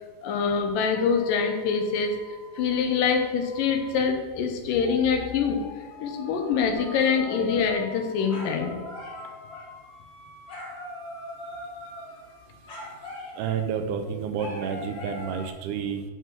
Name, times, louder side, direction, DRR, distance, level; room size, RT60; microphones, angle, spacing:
voice 1, 0.2-2.2 2.6-5.6 6.0-8.8, left 6 dB, 80° left, 5 dB, 2.5 m, -25 dB
sound 1, 0.9-4.1 4.8-13.8 14.4-15.5, left 1 dB, 50° left, 1.5 m, -42 dB
voice 2, 13.4-16.0, right 7 dB, 75° right, 7 dB, 2.2 m, -30 dB
8.1 x 5.5 x 6.1 m, 1.3 s
omnidirectional pair, 3.9 m